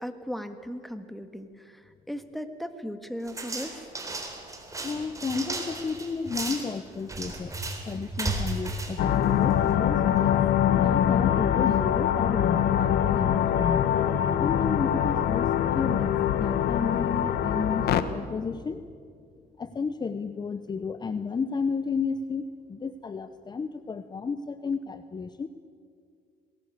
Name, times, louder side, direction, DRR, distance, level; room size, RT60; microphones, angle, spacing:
voice 1, 0.0-3.9, equal, ahead, 9 dB, 1.6 m, -37 dB
sound 1, 3.3-9.8, right 2 dB, 20° right, 3.8 m, -35 dB
voice 2, 4.8-7.5 7.9-10.4 10.7-13.9 14.4-18.9 19.6-25.5, left 5 dB, 25° left, 11 dB, 0.8 m, -32 dB
sound 2, 9.0-18.0, left 10 dB, 70° left, 1.3 m, -24 dB
21.5 x 18.5 x 8.3 m, 2.3 s
cardioid pair, 110°, 17 cm